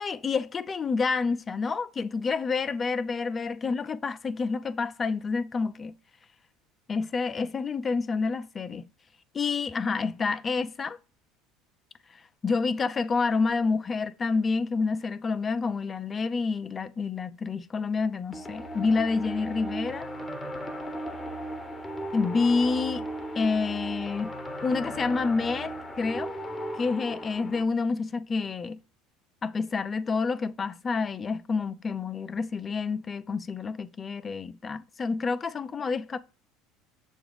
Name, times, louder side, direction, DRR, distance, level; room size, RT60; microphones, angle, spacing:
voice 1, 0.0-5.9 6.9-8.9 9.3-11.0 12.1-20.1 22.1-23.0 23.4-24.3 24.6-26.4 26.8-28.8 29.4-36.2, left 4 dB, 30° left, 0.4 m, -28 dB
sound 1, 18.3-27.6, right 1 dB, 15° left, 0.8 m, -36 dB
6.9 x 2.3 x 3.2 m
hypercardioid pair, 80°, 0 cm